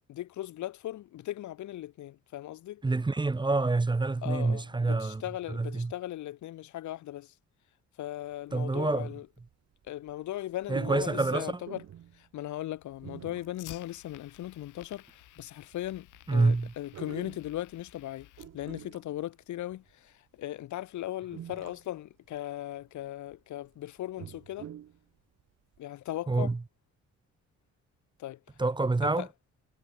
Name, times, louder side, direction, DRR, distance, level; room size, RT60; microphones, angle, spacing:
voice 1, 0.0-2.8 4.2-7.3 8.0-9.3 9.8-11.8 12.1-24.7 25.8-26.5 28.2-28.6 29.0-29.3, left 14 dB, 70° left, 1.0 m, -38 dB
voice 2, 2.8-5.2 5.5-5.9 8.5-9.1 10.7-11.5 16.3-16.7 26.3-26.6 28.6-29.3, right 3 dB, 15° right, 0.8 m, -27 dB
sound 1, 8.5-8.6 9.4-9.5 9.9-10.1 10.6-12.3 13.0-13.8 14.2-14.3 15.1-15.2 15.4-18.0 18.4-19.9 20.7-20.8 21.3-22.0 22.4-22.5 23.1-23.4 24.0-25.0 25.4-25.5 25.7-25.8, right 10 dB, 60° right, 1.4 m, -46 dB
Fire, 12.8-18.8, left 16 dB, 90° left, 5.7 m, -54 dB
cardioid pair, 90°, 30 cm